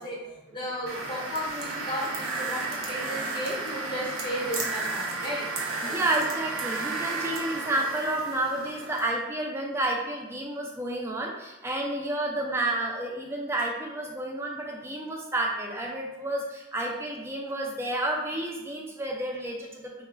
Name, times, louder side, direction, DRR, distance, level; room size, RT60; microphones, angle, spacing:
voice 1, 0.0-5.4 5.8-5.9, equal, 20° left, -5 dB, 0.6 m, -34 dB
sound 1, 0.9-9.1, right 3 dB, 75° right, 0.5 m, -33 dB
voice 2, 5.8-19.8, right 1 dB, 10° right, -1 dB, 0.3 m, -30 dB
2.2 x 2.1 x 3.2 m, 0.99 s
head